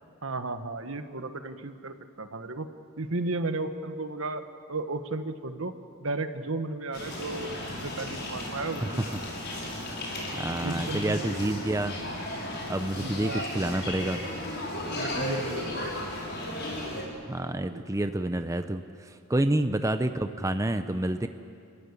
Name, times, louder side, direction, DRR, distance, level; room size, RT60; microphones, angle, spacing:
voice 1, 0.2-2.7 3.0-4.4 4.7-5.7 6.0-9.1 10.6-11.7 12.9-13.5 14.9-15.9 17.6-17.8, right 2 dB, 65° right, 8 dB, 1.4 m, -34 dB
sound 1, 6.9-17.0, left 1 dB, 50° left, 6.1 m, -35 dB
voice 2, 10.3-12.0 12.7-14.2 17.3-21.3, right 1 dB, 15° right, 8 dB, 0.6 m, -28 dB
30.0 x 15.0 x 9.8 m, 2.4 s
head